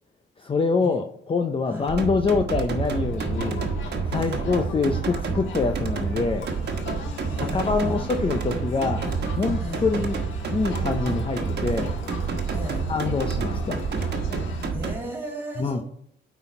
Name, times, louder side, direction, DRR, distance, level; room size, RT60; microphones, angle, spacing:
voice 1, 0.4-3.6 4.1-6.5 7.4-9.1 9.4-10.2 10.5-11.9 12.9-13.8 15.6-15.8, left 4 dB, 25° left, 5 dB, 0.6 m, -25 dB
sound 1, 1.9-14.9, right 5 dB, 55° right, 1.3 m, -28 dB
Crowd, 2.8-14.7, left 4 dB, 80° left, 1.5 m, -39 dB
voice 2, 7.2-8.1 9.6-9.9 12.5-12.9 14.7-15.8, equal, 10° right, 0 dB, 2.8 m, -36 dB
9.3 x 4.1 x 4.4 m, 0.66 s
cardioid pair, 90°, 20 cm